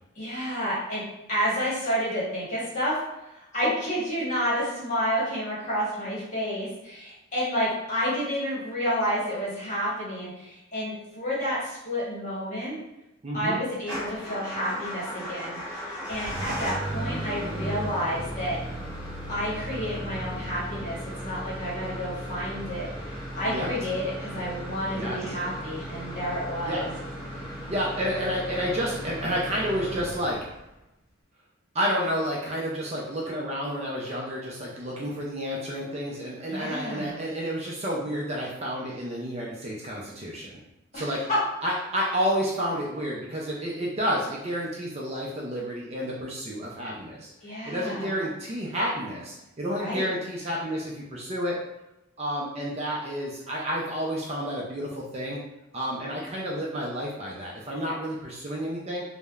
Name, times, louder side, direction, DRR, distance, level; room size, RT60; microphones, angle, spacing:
voice 1, 0.2-1.0 1.3-12.8 13.3-18.6 19.3-26.9 36.5-37.2 40.9-41.4 47.4-48.1 49.8-50.1, equal, 35° left, -8 dB, 1.0 m, -30 dB
voice 2, 13.2-13.6 23.5-23.7 24.9-25.2 26.6-26.8 27.7-30.4 31.7-40.6 40.9-41.2 41.6-47.3 47.7-51.6 52.2-55.4 55.7-59.0, equal, 30° right, -3 dB, 0.3 m, -30 dB
Motor vehicle (road) / Engine starting / Idling, 13.8-30.8, equal, 5° right, 0.7 m, -36 dB
3.2 x 2.0 x 2.3 m, 0.92 s
head